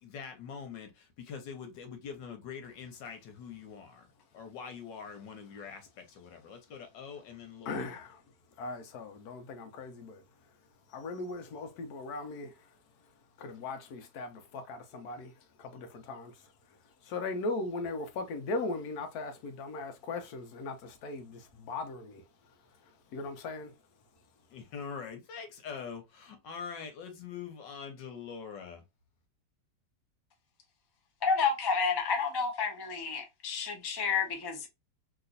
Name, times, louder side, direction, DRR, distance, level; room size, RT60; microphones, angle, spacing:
voice 1, 0.0-4.1 4.3-7.9 24.5-28.8, left 6 dB, 85° left, 1.6 m, -44 dB
voice 2, 7.6-8.2 8.6-10.5 10.9-13.1 13.4-23.7, left 3 dB, 65° left, 1.2 m, -39 dB
voice 3, 31.2-34.7, left 5 dB, 35° left, 0.3 m, -30 dB
3.2 x 3.0 x 2.5 m
omnidirectional pair, 1.9 m